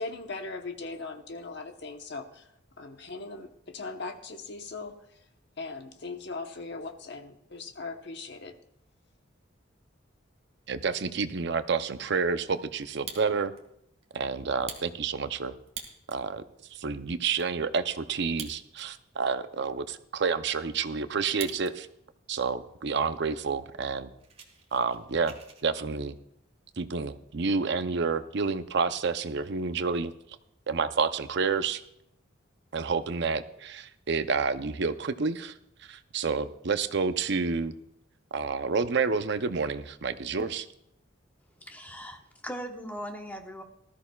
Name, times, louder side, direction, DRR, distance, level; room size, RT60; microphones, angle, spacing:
voice 1, 0.0-2.5 2.8-5.1 5.6-8.6, left 3 dB, 60° left, 6 dB, 1.1 m, -39 dB
voice 2, 10.7-13.5 14.1-15.5 16.1-16.4 16.7-21.9 22.3-24.1 24.7-25.3 25.6-26.2 26.8-30.1 30.7-31.8 32.7-35.5 35.8-37.7 38.3-40.7, right 5 dB, 60° right, 10 dB, 0.6 m, -29 dB
Fire, 12.8-13.6 14.0-14.1 14.5-16.3 16.8-16.9 17.0-17.5 18.2-19.0 19.4-19.5 20.0-21.7 22.1-22.5 23.1-23.2 23.4-23.6 23.9-25.6, right 6 dB, 30° right, 1.5 m, -44 dB
voice 3, 41.6-43.6, equal, 10° left, 3 dB, 1.1 m, -39 dB
18.5 x 13.5 x 2.4 m, 0.77 s
head